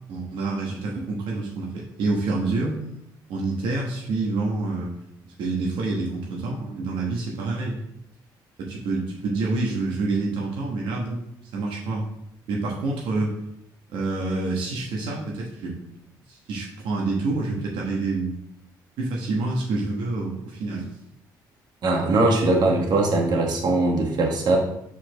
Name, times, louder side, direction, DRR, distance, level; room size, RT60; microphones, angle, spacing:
voice 1, 0.1-2.8 3.3-4.9 5.4-7.8 8.6-11.2 11.5-12.1 12.5-13.3 13.9-15.8 16.3-18.3 19.0-20.9, right 3 dB, 85° right, -2 dB, 1.4 m, -27 dB
voice 2, 21.8-24.6, right 2 dB, 55° right, 0 dB, 1.7 m, -21 dB
5.1 x 4.4 x 5.9 m, 0.76 s
cardioid pair, 100°, 8 cm